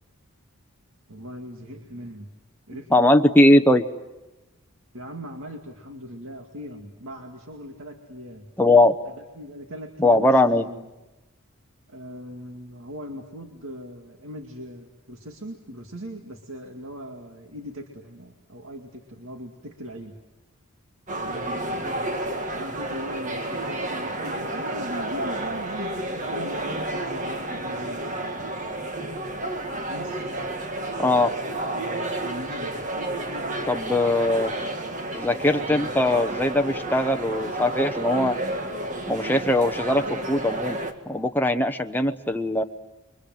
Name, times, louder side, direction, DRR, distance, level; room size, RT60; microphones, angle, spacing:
voice 1, 1.1-2.3 2.7-3.1 4.9-8.5 9.1-10.9 11.9-20.2 21.2-22.1 22.5-28.4 29.9-30.3 32.2-32.8 38.6-38.7, equal, 65° right, 3 dB, 2.3 m, -40 dB
voice 2, 2.9-3.8 8.6-8.9 10.0-10.6 31.0-31.3 33.7-34.5 35.1-38.4 39.1-40.8 41.1-42.6, left 1 dB, 10° left, 6 dB, 0.9 m, -20 dB
sound 1, 21.1-40.9, right 1 dB, 35° right, 1.9 m, -31 dB
29.5 x 23.5 x 7.9 m, 1.0 s
head